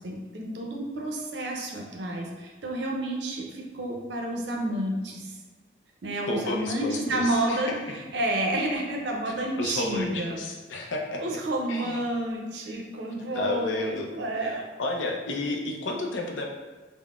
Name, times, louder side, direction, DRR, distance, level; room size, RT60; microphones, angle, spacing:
voice 1, 0.0-5.3 6.0-7.7 8.1-10.4 11.2-14.6, right 1 dB, 65° right, 0 dB, 0.5 m, -30 dB
voice 2, 6.3-8.0 9.3-11.4 11.7-12.0 12.7-12.8 13.3-14.1 14.3-16.5, left 2 dB, 80° left, 1 dB, 0.5 m, -32 dB
3.7 x 2.0 x 2.3 m, 1.3 s
head